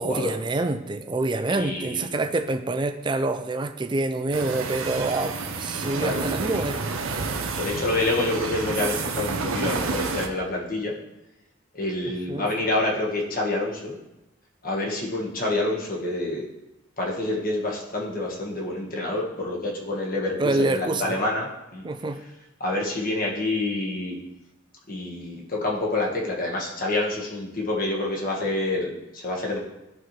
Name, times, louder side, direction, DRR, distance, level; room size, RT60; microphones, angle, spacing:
voice 1, 0.0-7.4 12.0-12.5 20.4-21.2 21.8-22.2, right 2 dB, 20° right, 8 dB, 0.4 m, -27 dB
voice 2, 1.5-2.1 6.0-6.2 7.6-10.9 11.7-14.0 14.6-16.5 17.0-21.8 22.6-24.1 24.9-29.6, left 2 dB, 45° left, -2 dB, 1.4 m, -27 dB
sound 1, 4.3-10.3, right 4 dB, 90° right, 0.7 m, -29 dB
11.5 x 4.3 x 3.2 m, 0.96 s
head